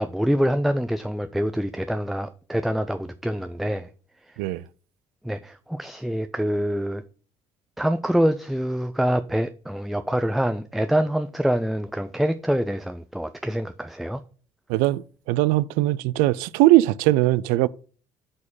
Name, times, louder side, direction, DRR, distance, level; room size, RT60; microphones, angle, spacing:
voice 1, 0.0-3.9 5.2-7.0 7.8-14.2, equal, ahead, 0.5 m, -25 dB
voice 2, 14.7-17.7, right 17 dB, 60° right, 0.4 m, -20 dB
8.7 x 4.2 x 7.0 m
figure-of-eight pair, 55°, 17 cm